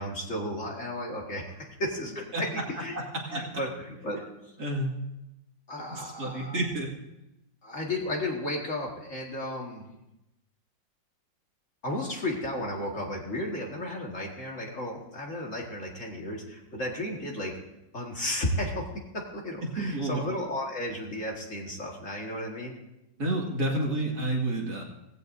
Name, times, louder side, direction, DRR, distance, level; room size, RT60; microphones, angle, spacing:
voice 1, 0.0-3.0 3.3-4.2 5.7-6.6 7.6-9.9 11.8-17.6 17.9-18.9 19.1-22.8, left 1 dB, 40° left, -1 dB, 2.2 m, -34 dB
voice 2, 3.3-3.6 4.6-4.9 5.9-6.9 19.8-20.2 23.2-24.8, right 1 dB, 55° right, -2 dB, 2.7 m, -29 dB
18.0 x 15.5 x 2.7 m, 0.92 s
omnidirectional pair, 2.0 m